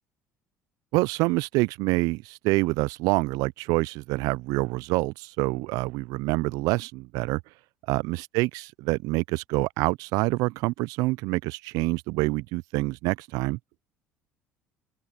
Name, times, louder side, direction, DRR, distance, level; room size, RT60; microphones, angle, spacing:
voice 1, 0.9-7.4 7.9-13.6, right 23 dB, 70° right, 0.5 m, -26 dB
open air
hypercardioid pair, 65°, 6 cm